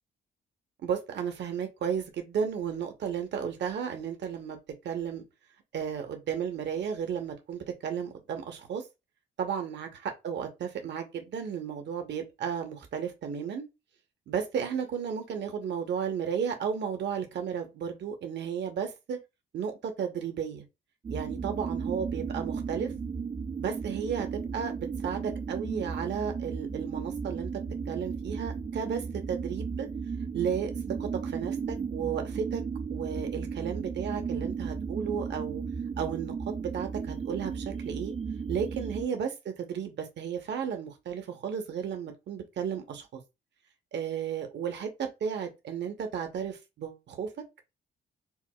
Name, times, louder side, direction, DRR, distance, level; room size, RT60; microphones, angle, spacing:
voice 1, 0.8-4.6 4.8-5.2 5.7-8.8 9.4-13.7 14.3-19.2 19.5-20.6 21.1-22.9 23.6-27.5 27.9-29.9 30.3-30.7 31.0-32.6 32.9-35.6 36.0-38.1 38.5-43.2 43.9-47.3, right 7 dB, 60° right, 0.9 m, -33 dB
sound 1, 21.0-39.1, right 5 dB, 30° right, 0.5 m, -35 dB
4.5 x 2.1 x 2.3 m
cardioid pair, 90°, 20 cm